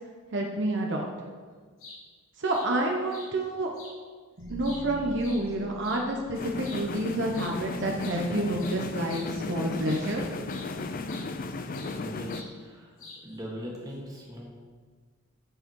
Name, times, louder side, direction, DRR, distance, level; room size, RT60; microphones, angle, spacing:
voice 1, 0.3-1.1 2.4-3.7 4.5-10.2, right 1 dB, 55° right, 1 dB, 0.9 m, -29 dB
sound 1, 1.6-2.0 2.5-2.7 3.1-3.3 3.7-3.9 4.4-6.0 6.6-6.8 7.3-7.5 7.8-10.1 10.5-10.7 11.1-12.0 12.3-12.5 13.0-13.4, left 3 dB, 75° left, 2.4 m, -47 dB
sound 2, 4.4-8.6, equal, 80° right, 2.7 m, -46 dB
sound 3, 6.3-12.4, left 3 dB, 40° left, 0.5 m, -35 dB
voice 2, 11.8-14.4, equal, 15° right, -2 dB, 1.7 m, -41 dB
13.5 x 4.8 x 4.6 m, 1.5 s
head